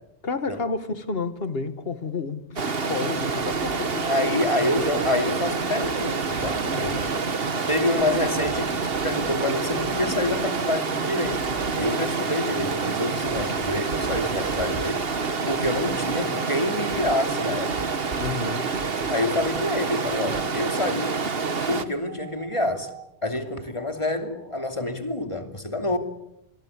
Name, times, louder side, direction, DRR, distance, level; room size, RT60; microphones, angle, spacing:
voice 1, 0.2-5.1 6.7-7.1 12.2-12.3 18.2-18.9, left 4 dB, 65° left, 1.9 m, -31 dB
Stream, 2.6-21.8, right 4 dB, 65° right, 1.7 m, -27 dB
voice 2, 4.0-7.1 7.7-11.5 11.8-17.9 19.1-21.3 21.7-22.9 23.2-26.0, left 1 dB, 30° left, 2.9 m, -27 dB
sound 1, 5.3-24.6, right 10 dB, 45° right, 4.9 m, -45 dB
28.5 x 22.0 x 8.3 m
omnidirectional pair, 1.1 m